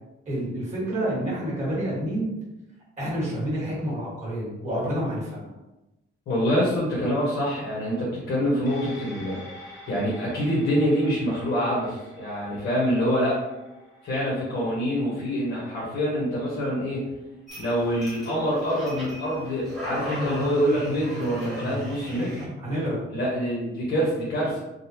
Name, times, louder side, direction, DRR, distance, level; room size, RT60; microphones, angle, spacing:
voice 1, 0.2-2.3 3.0-5.5 22.6-23.0, right 1 dB, 35° right, -7 dB, 1.5 m, -28 dB
voice 2, 6.3-9.4 9.9-13.4 14.0-17.0 17.6-22.4 23.1-24.6, equal, 65° left, -5 dB, 1.1 m, -25 dB
sound 1, 8.7-17.3 17.7-17.8, left 1 dB, 20° right, 1.2 m, -48 dB
sound 2, 17.5-22.5, equal, ahead, 0.9 m, -36 dB
3.8 x 2.4 x 2.9 m, 0.99 s
cardioid pair, 170°, 21 cm